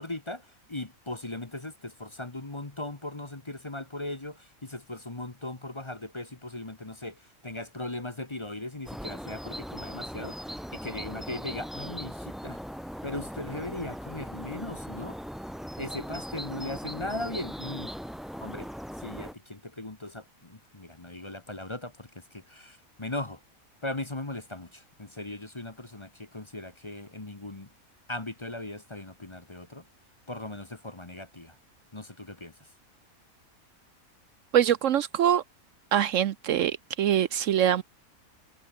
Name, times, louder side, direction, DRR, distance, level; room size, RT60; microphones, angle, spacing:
voice 1, 0.0-12.6 13.0-15.2 15.8-17.9 18.4-18.7 19.0-23.4 23.8-27.7 28.1-29.8 30.3-31.6 31.9-32.7, left 2 dB, 20° left, 1.3 m, -38 dB
sound 1, 8.9-19.3, equal, ahead, 0.6 m, -39 dB
voice 2, 34.5-35.4 35.9-37.8, right 10 dB, 65° right, 1.0 m, -24 dB
omnidirectional pair, 1.5 m